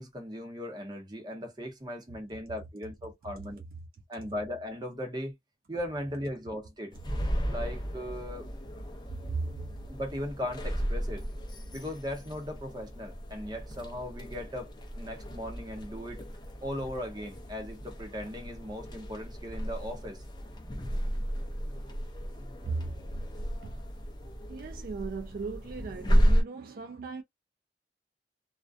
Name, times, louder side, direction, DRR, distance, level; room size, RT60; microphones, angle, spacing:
voice 1, 0.0-3.6 4.1-5.3 5.7-7.0 7.5-8.5 9.9-11.2 11.7-16.3 16.6-20.2, left 1 dB, 25° right, 0.8 m, -38 dB
sound 1, 6.9-26.4, equal, 25° left, 0.5 m, -33 dB
voice 2, 23.4-23.8 24.5-27.2, right 4 dB, 55° right, 0.3 m, -37 dB
2.4 x 2.2 x 2.4 m
head